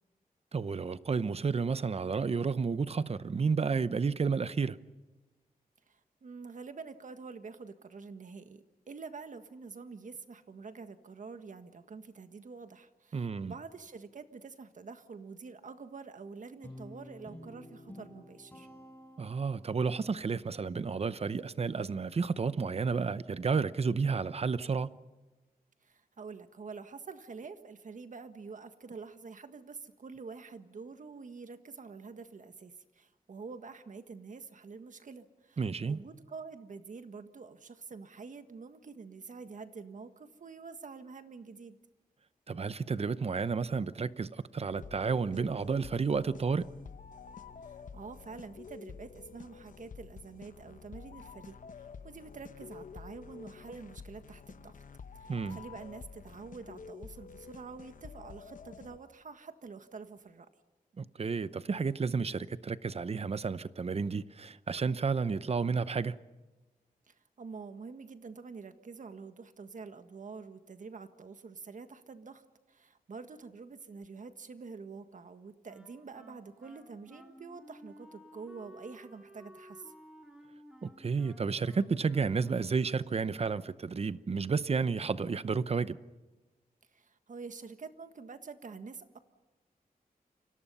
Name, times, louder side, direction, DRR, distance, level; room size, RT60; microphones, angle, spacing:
voice 1, 0.5-4.8 13.1-13.5 19.2-24.9 35.6-36.0 42.5-46.7 55.3-55.6 61.0-66.2 80.8-86.0, right 5 dB, 40° right, 0.8 m, -31 dB
voice 2, 5.9-18.7 25.8-41.8 47.6-54.8 55.1-60.5 67.1-79.9 86.9-89.2, right 4 dB, 55° right, 1.6 m, -47 dB
Guitar, 16.6-19.9, left 1 dB, 10° left, 7.9 m, -50 dB
sound 1, 44.7-59.0, left 5 dB, 60° left, 1.0 m, -49 dB
Wind instrument woodwind instrument, 75.6-83.0, equal, 5° right, 3.9 m, -55 dB
29.5 x 25.5 x 5.6 m
wide cardioid pair, 155°, 15 cm